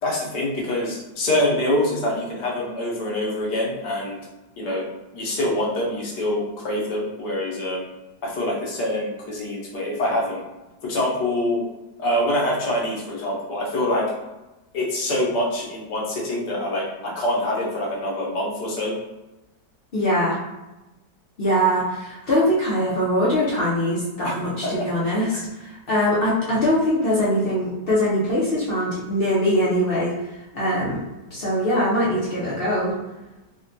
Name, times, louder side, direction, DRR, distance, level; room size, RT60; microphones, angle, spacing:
voice 1, 0.0-4.2 4.6-4.8 5.1-7.8 8.2-10.4 10.8-11.6 12.0-14.1 14.7-18.9 24.2-24.3 24.6-24.9, left 1 dB, 85° left, -4 dB, 1.4 m, -25 dB
voice 2, 19.9-20.4 21.4-30.1 30.5-31.0 31.3-33.0, equal, 65° left, -7 dB, 0.5 m, -22 dB
3.5 x 2.1 x 2.6 m, 1.0 s
omnidirectional pair, 1.8 m